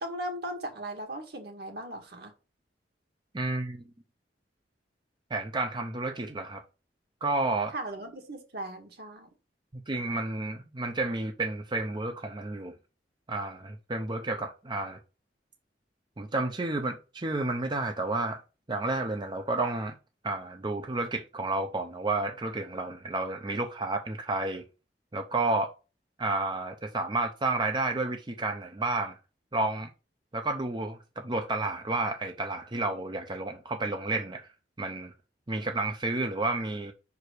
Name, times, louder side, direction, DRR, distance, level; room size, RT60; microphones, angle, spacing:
voice 1, 0.0-2.3 7.7-9.3, right 1 dB, 65° right, 2.0 m, -38 dB
voice 2, 3.3-3.8 5.3-6.6 7.2-7.7 9.7-12.7 13.3-15.0 16.2-18.4 18.7-20.0 20.2-24.6 25.1-25.7 26.2-29.2 29.5-29.9 30.3-34.5 34.8-35.1 35.5-36.9, right 2 dB, 25° right, 0.6 m, -31 dB
5.6 x 4.7 x 6.5 m
head